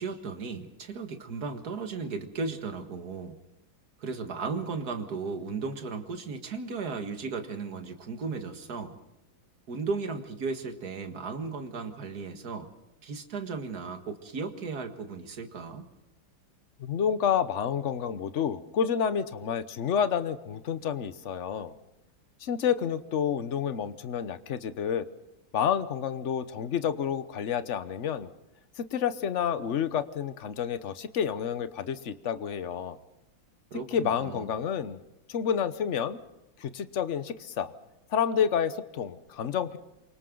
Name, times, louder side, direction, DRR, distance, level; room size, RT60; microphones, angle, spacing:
voice 1, 0.0-3.4 4.0-9.0 9.7-12.7 13.0-15.9 33.7-34.5, right 4 dB, 55° right, 6 dB, 2.2 m, -35 dB
voice 2, 16.8-21.7 22.4-25.1 25.5-28.3 28.9-33.0 33.9-35.0 35.3-36.2 36.6-37.7 38.1-39.8, left 8 dB, 50° left, 12 dB, 1.0 m, -29 dB
28.0 x 24.5 x 3.9 m, 0.97 s
omnidirectional pair, 2.1 m